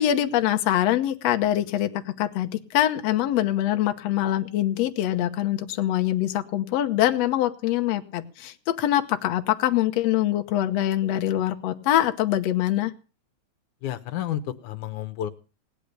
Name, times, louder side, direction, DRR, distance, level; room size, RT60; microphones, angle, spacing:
voice 1, 0.0-12.9, left 13 dB, 65° left, 7 dB, 2.0 m, -24 dB
voice 2, 13.8-15.3, left 11 dB, 85° left, 10 dB, 2.5 m, -31 dB
18.0 x 10.0 x 6.6 m, 0.35 s
omnidirectional pair, 3.5 m